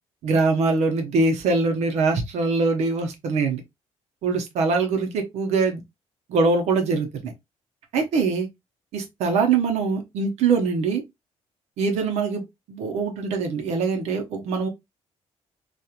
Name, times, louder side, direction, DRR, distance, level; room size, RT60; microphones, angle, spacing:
voice 1, 0.2-3.6 4.2-5.8 6.3-7.3 7.9-8.5 8.9-11.0 11.8-12.4 12.7-14.7, right 4 dB, 75° right, 0.8 m, -23 dB
2.9 x 2.4 x 2.4 m
cardioid pair, 165°, 11 cm